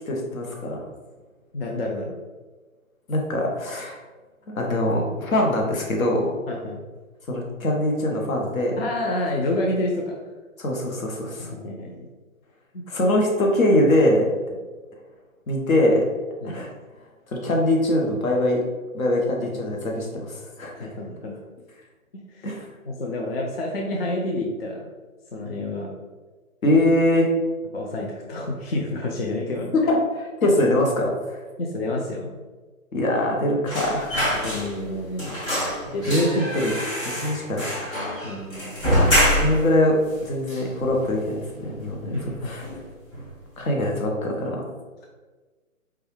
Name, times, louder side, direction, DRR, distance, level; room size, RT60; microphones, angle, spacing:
voice 1, 0.1-0.8 3.1-4.0 4.5-6.3 7.3-8.8 10.6-11.5 12.9-14.3 15.5-16.0 16.4-16.7 17.3-18.6 18.9-20.7 22.4-22.6 26.6-27.3 29.9-31.1 32.9-34.2 35.8-36.7 37.0-37.7 39.3-42.1 42.4-42.6 43.6-44.6, left 1 dB, 75° left, 0 dB, 1.2 m, -22 dB
voice 2, 1.5-2.1 6.5-6.8 8.8-10.2 11.4-12.1 12.7-12.8 16.4-16.6 19.4-19.5 20.7-21.4 22.1-22.5 22.8-24.9 25.3-25.9 27.7-29.7 31.6-32.3 34.3-35.4 35.9-36.2 38.2-38.7 42.0-42.5, left 1 dB, 45° left, -1 dB, 0.5 m, -29 dB
sound 1, 33.7-34.9 35.2-39.7 40.1-40.2 40.5-41.3 41.6-41.8 42.1-42.8 43.1-43.3, equal, 20° left, 1.2 m, -25 dB
4.8 x 2.3 x 3.1 m, 1.3 s
hypercardioid pair, 155°, 42 cm